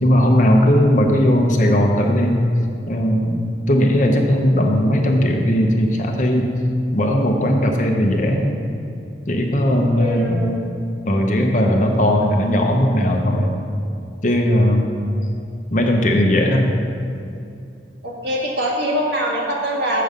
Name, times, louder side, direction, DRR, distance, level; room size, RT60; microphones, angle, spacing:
voice 1, 0.0-2.4 2.9-6.5 6.9-8.5 9.3-10.5 11.1-13.5 14.2-14.9 15.7-16.6, equal, 45° left, 2 dB, 0.9 m, -17 dB
voice 2, 9.7-10.6 15.0-15.1 18.0-20.0, equal, 65° right, -3 dB, 1.7 m, -24 dB
7.8 x 5.4 x 6.6 m, 2.6 s
head